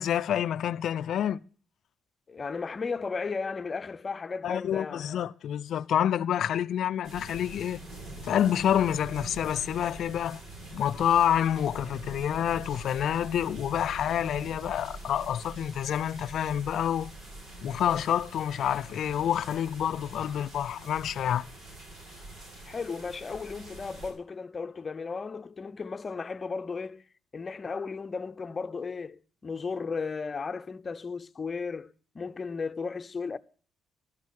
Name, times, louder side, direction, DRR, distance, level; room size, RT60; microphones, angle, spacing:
voice 1, 0.0-1.4 4.4-7.8 8.2-10.4 10.7-17.1 17.6-21.5, left 10 dB, 70° left, 0.5 m, -28 dB
voice 2, 2.3-5.0 22.7-27.0 27.3-33.4, left 4 dB, 35° left, 0.8 m, -35 dB
sound 1, 7.0-24.1, right 2 dB, 65° right, 6.4 m, -44 dB
12.5 x 6.2 x 8.5 m
cardioid pair, 90°, 0 cm